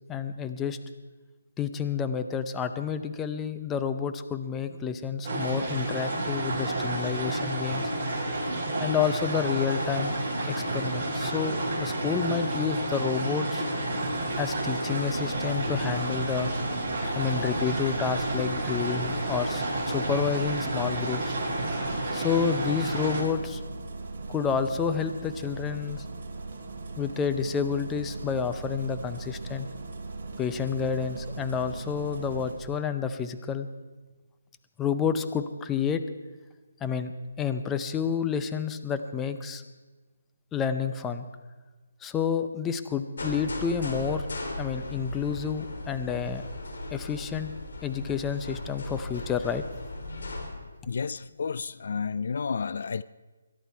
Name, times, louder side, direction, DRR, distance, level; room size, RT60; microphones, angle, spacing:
voice 1, 0.1-0.8 1.6-7.9 8.8-10.1 10.5-13.6 14.4-16.5 17.1-21.4 22.1-23.6 24.3-26.0 27.0-29.7 30.4-33.7 34.8-36.0 36.8-37.1 37.4-39.6 40.5-41.3 42.0-44.3 44.6-46.5 46.9-47.5 47.8-49.6, left 7 dB, 10° left, 9 dB, 0.6 m, -29 dB
sound 1, 5.2-23.2, right 1 dB, 25° right, 6.8 m, -30 dB
Engine starting, 14.0-32.5, right 3 dB, 45° right, 2.9 m, -39 dB
sound 2, 43.2-50.5, left 2 dB, 75° left, 3.6 m, -37 dB
voice 2, 50.9-53.0, left 5 dB, 55° left, 18 dB, 0.4 m, -31 dB
22.0 x 11.5 x 4.5 m, 1.3 s
hypercardioid pair, 165°, 0 cm